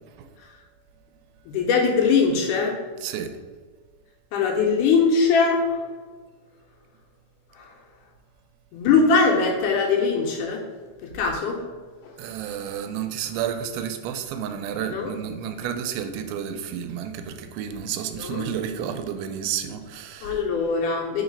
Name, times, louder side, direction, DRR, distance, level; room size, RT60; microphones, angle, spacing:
voice 1, 1.5-2.8 4.3-5.8 7.6-7.7 8.7-10.7 11.0-11.6 12.0-12.1 14.9-15.1 18.2-18.4 20.2-21.2, left 5 dB, 75° left, 0 dB, 2.0 m, -21 dB
voice 2, 3.0-3.3 12.2-20.4, right 8 dB, 90° right, 8 dB, 2.4 m, -31 dB
4.7 x 4.0 x 5.1 m, 1.4 s
omnidirectional pair, 4.2 m